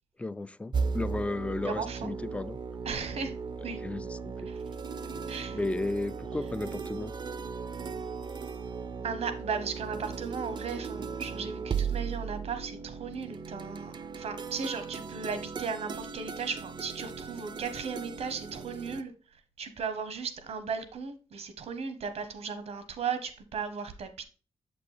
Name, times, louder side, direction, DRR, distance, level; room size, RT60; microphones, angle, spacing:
voice 1, 0.2-2.6 3.8-4.5 5.5-7.1, left 2 dB, 10° left, 0.4 m, -34 dB
sound 1, 0.7-19.0, right 5 dB, 45° right, 0.5 m, -37 dB
voice 2, 1.6-2.1 2.8-3.3 3.6-3.8 4.5-4.6 5.3-5.6 9.0-19.1 19.6-24.2, right 5 dB, 85° right, 1.1 m, -36 dB
7.3 x 5.9 x 3.4 m
cardioid pair, 90°, 10 cm